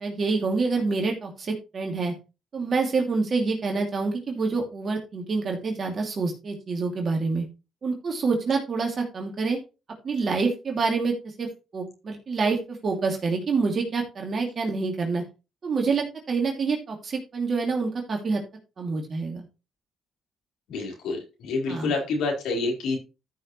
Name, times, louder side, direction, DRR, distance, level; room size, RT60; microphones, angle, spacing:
voice 1, 0.0-2.2 2.5-7.4 7.8-9.6 10.0-15.2 15.6-18.4 18.8-19.4 21.7-21.9, right 4 dB, 45° right, 1 dB, 2.7 m, -27 dB
voice 2, 20.7-23.0, left 3 dB, 85° left, 0 dB, 4.7 m, -28 dB
13.5 x 6.4 x 3.2 m, 0.29 s
cardioid pair, 90°, 0 cm